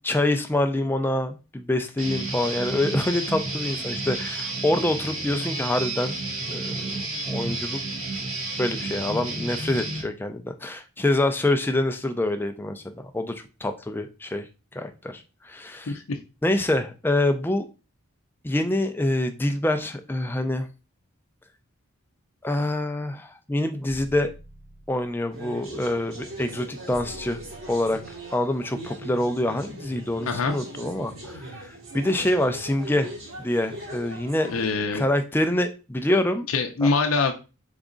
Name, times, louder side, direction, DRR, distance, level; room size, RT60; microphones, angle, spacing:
voice 1, 0.0-6.2 6.5-7.8 8.6-12.8 13.1-14.5 14.7-16.0 16.4-17.7 18.4-20.7 22.4-24.3 24.9-27.4 27.7-28.0 28.3-33.1 33.4-34.5 34.9-36.5, left 1 dB, 10° left, 7 dB, 0.4 m, -26 dB
Guitar, 2.0-10.0, right 2 dB, 80° right, 1.6 m, -31 dB
voice 2, 15.9-16.2 30.3-30.5 34.5-35.0 36.5-37.3, left 4 dB, 75° left, 4 dB, 0.6 m, -24 dB
sound 1, 23.9-25.3 26.9-28.3, right 1 dB, 30° right, 1.3 m, -47 dB
sound 2, 25.3-34.7, right 1 dB, 60° right, 2.0 m, -40 dB
4.0 x 3.5 x 3.7 m, 0.31 s
head